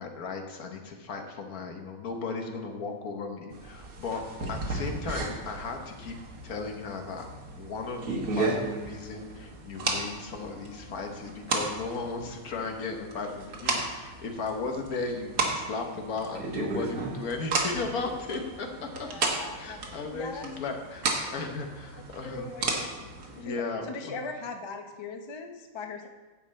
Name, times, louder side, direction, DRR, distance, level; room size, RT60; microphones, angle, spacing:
voice 1, 0.0-4.2 4.5-6.2 6.4-7.3 7.5-19.3 19.6-21.1 21.3-22.5 23.0-24.2, left 4 dB, 80° left, 4 dB, 1.5 m, -36 dB
sound 1, 3.5-23.4, right 3 dB, 75° right, 1.7 m, -34 dB
voice 2, 19.1-20.4 22.2-22.9 23.4-23.6 23.9-26.1, left 4 dB, 30° left, 4 dB, 0.5 m, -40 dB
10.0 x 7.2 x 4.2 m, 1.3 s
omnidirectional pair, 1.5 m